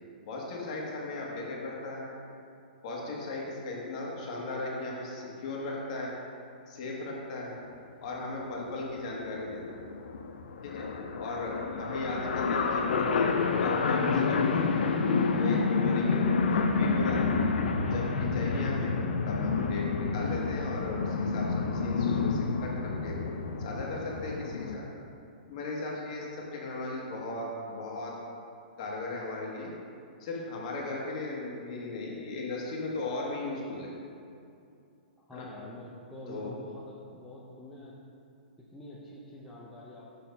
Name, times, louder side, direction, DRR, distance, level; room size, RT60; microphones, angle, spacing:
voice 1, 0.2-2.2 2.8-6.1 6.7-7.6 8.0-9.6 10.6-10.9 11.2-13.3 13.6-14.9 15.3-17.4 17.8-18.9 19.2-23.2 23.6-24.9 25.5-28.1 28.8-29.7 30.2-33.9 35.3-35.5 36.3-36.6, left 2 dB, 45° left, -3 dB, 1.4 m, -36 dB
sound 1, 8.2-8.4 8.7-8.8 8.9-24.8, left 4 dB, 80° left, 0.5 m, -29 dB
voice 2, 35.3-38.0 38.6-40.1, left 1 dB, 5° left, -8 dB, 0.6 m, -46 dB
6.5 x 4.1 x 5.4 m, 2.5 s
hypercardioid pair, 160°, 5 cm